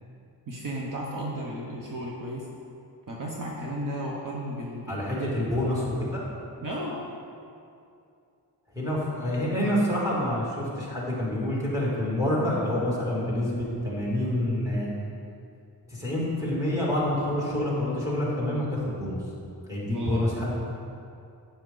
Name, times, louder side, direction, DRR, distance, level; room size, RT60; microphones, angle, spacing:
voice 1, 0.5-2.5 3.1-5.3 6.6-7.0 19.8-20.2, right 1 dB, 50° right, -3 dB, 1.2 m, -34 dB
voice 2, 4.9-6.2 8.7-14.9 15.9-19.2 19.7-20.6, left 1 dB, 10° right, -6 dB, 2.8 m, -27 dB
12.5 x 8.7 x 4.0 m, 2.6 s
wide cardioid pair, 160°, 41 cm